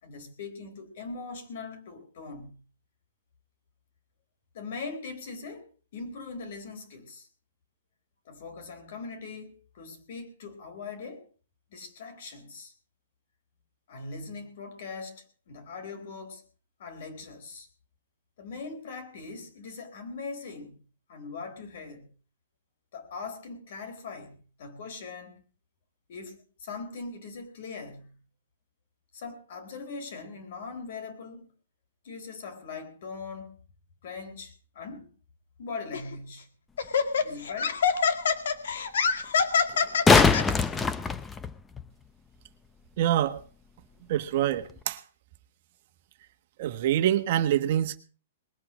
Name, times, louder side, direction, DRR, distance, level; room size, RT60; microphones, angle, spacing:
voice 1, 0.0-2.6 4.5-5.7 5.9-7.3 8.3-11.3 11.7-12.7 13.9-16.4 16.8-17.7 18.4-20.8 21.1-22.1 22.9-25.4 26.1-28.2 29.1-31.5 32.0-33.6 34.0-35.1 35.6-36.5 37.2-37.8, left 4 dB, 50° left, 3.9 m, -41 dB
Laughter, 35.9-36.1 36.8-40.4, left 6 dB, 75° left, 2.0 m, -25 dB
sound 1, 36.8-36.9 39.7-41.8 44.7-44.8, left 4 dB, 10° left, 0.6 m, -22 dB
voice 2, 43.0-43.4 44.1-45.0 46.6-48.0, right 11 dB, 45° right, 1.4 m, -25 dB
20.5 x 8.6 x 6.3 m
hypercardioid pair, 165°, 0 cm